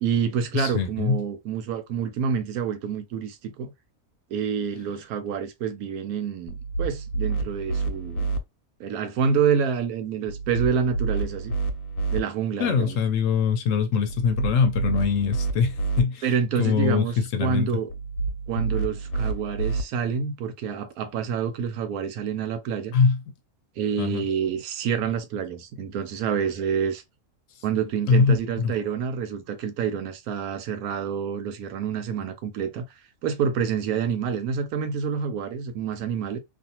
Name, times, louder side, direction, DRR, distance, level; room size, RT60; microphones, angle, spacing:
voice 1, 0.0-3.7 4.3-8.3 8.8-11.5 12.1-13.0 16.2-17.1 17.4-17.9 18.5-22.9 23.8-27.0 27.6-32.8 33.2-36.4, right 7 dB, 80° right, 1.1 m, -27 dB
voice 2, 0.5-1.2 12.6-16.3 16.6-17.8 22.9-23.2 24.0-24.2 28.1-28.7, left 6 dB, 70° left, 0.9 m, -23 dB
sound 1, 6.5-8.4 10.3-12.2 14.1-16.0 17.9-19.8, right 3 dB, 90° left, 1.1 m, -28 dB
2.5 x 2.4 x 2.8 m
omnidirectional pair, 1.5 m